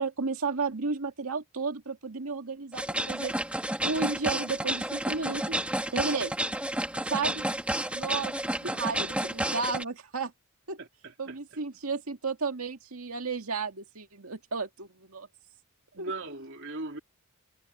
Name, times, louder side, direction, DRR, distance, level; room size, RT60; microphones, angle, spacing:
voice 1, 0.0-3.3 3.8-5.7 5.9-6.3 7.1-7.4 7.9-8.3 8.6-10.3 10.7-10.8 11.2-15.3 16.0-16.1, right 4 dB, 85° right, 2.0 m, -33 dB
sound 1, 2.7-9.8, right 1 dB, 5° right, 2.6 m, -31 dB
voice 2, 8.6-9.1 10.8-11.4 15.9-17.0, right 2 dB, 55° right, 3.7 m, -39 dB
head